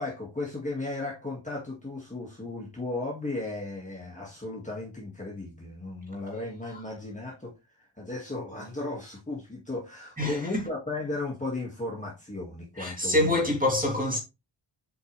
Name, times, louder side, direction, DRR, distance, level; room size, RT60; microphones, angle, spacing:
voice 1, 0.0-7.5 8.0-13.5, left 2 dB, 15° left, 2.1 m, -35 dB
voice 2, 10.2-10.5 12.8-14.2, left 1 dB, 15° right, 3.1 m, -25 dB
8.1 x 4.5 x 3.3 m
wide cardioid pair, 115°, 48 cm